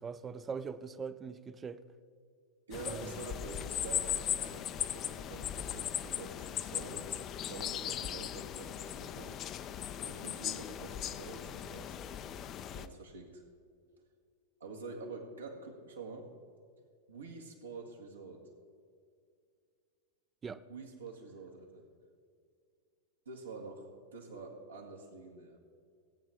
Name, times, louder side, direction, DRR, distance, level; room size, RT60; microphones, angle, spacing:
voice 1, 0.0-1.8 2.9-3.1 20.4-20.6, right 5 dB, 20° right, 15 dB, 0.5 m, -41 dB
sound 1, 2.7-12.9, left 10 dB, 30° left, 0.5 m, -38 dB
voice 2, 2.7-9.5 10.0-12.0 12.7-13.4 14.6-16.3 17.1-18.5 20.7-21.9 23.3-25.6, right 3 dB, 75° right, 0 dB, 1.9 m, -47 dB
18.5 x 8.8 x 3.5 m, 2.2 s
figure-of-eight pair, 90°, 0 cm